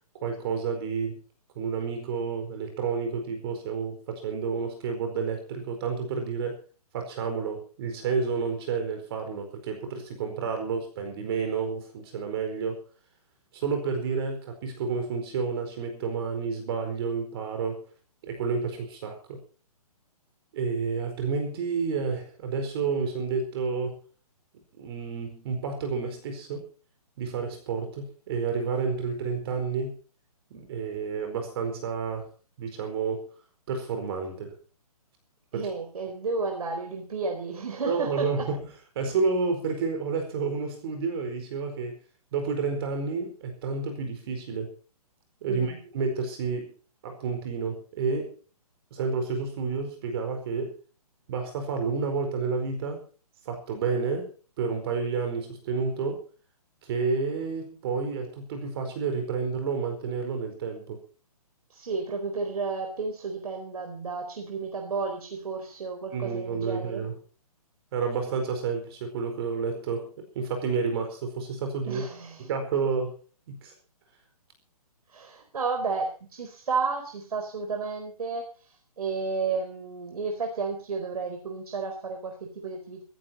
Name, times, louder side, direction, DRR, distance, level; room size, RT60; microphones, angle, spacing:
voice 1, 0.1-1.2 1.5-6.6 6.9-12.8 13.5-17.8 18.2-19.4 20.5-24.0 24.8-26.6 27.2-30.0 30.5-32.3 32.6-33.3 33.7-34.6 35.5-35.7 37.8-38.6 38.9-42.0 42.3-44.7 45.4-46.7 47.0-48.4 48.9-50.8 51.3-53.0 53.4-54.3 54.6-56.2 56.8-61.0 66.1-67.2 67.9-72.0 72.4-73.2 73.5-73.7, right 5 dB, 40° right, 6 dB, 4.6 m, -30 dB
voice 2, 35.5-38.5 45.5-45.8 61.7-67.0 71.8-72.5 75.1-78.5 79.0-83.0, right 4 dB, 70° right, 4 dB, 4.4 m, -32 dB
15.5 x 15.5 x 4.4 m, 0.38 s
hypercardioid pair, 155°, 20 cm